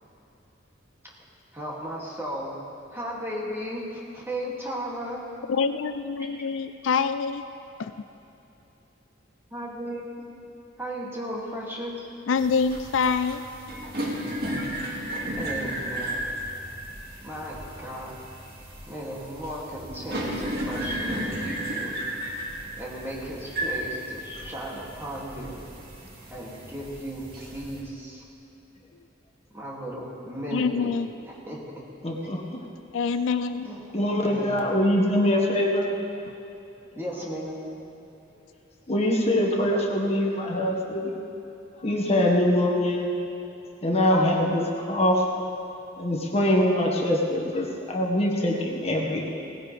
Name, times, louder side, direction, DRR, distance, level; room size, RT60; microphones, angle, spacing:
voice 1, 1.5-2.5 2.9-5.3 9.5-10.1 10.8-12.1 15.4-16.3 17.2-18.2 18.9-22.0 22.8-25.6 26.3-28.2 29.5-31.0 31.3-31.6 33.6-33.8 34.2-34.7 37.0-37.6 44.1-44.3, equal, 15° right, -5 dB, 2.5 m, -35 dB
voice 2, 5.5-7.4 7.8-7.9 12.3-13.4 30.5-31.1 32.9-33.7, left 5 dB, 70° left, 11 dB, 0.4 m, -25 dB
sound 1, 12.4-27.8, right 1 dB, 55° right, 2.3 m, -34 dB
voice 3, 32.0-32.4 33.9-35.9 38.9-41.1 41.8-43.1 43.8-45.2 46.0-49.4, left 1 dB, 35° left, -1 dB, 1.6 m, -23 dB
18.5 x 16.0 x 3.4 m, 2.9 s
head